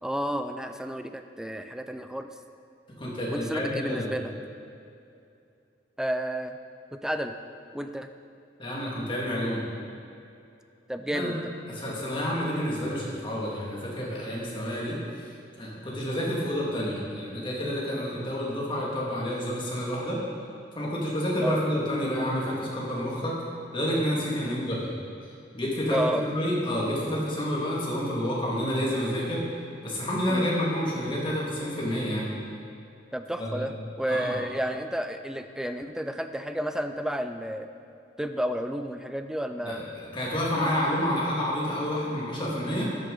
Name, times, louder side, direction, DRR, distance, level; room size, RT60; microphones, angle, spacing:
voice 1, 0.0-2.3 3.3-4.3 6.0-6.6 7.0-7.4 7.7-8.1 10.9-11.4 21.4-21.6 24.4-24.6 25.9-26.2 30.3-30.5 33.1-37.7 38.2-39.8, equal, 5° right, 8 dB, 0.4 m, -31 dB
voice 2, 3.0-4.1 8.6-9.6 11.1-11.4 11.7-15.0 15.6-20.2 20.7-23.3 23.7-24.9 25.5-29.4 29.8-32.3 33.4-33.7 34.1-34.4 39.6-42.9, equal, 30° left, -5 dB, 2.0 m, -29 dB
13.5 x 6.7 x 3.8 m, 2.6 s
head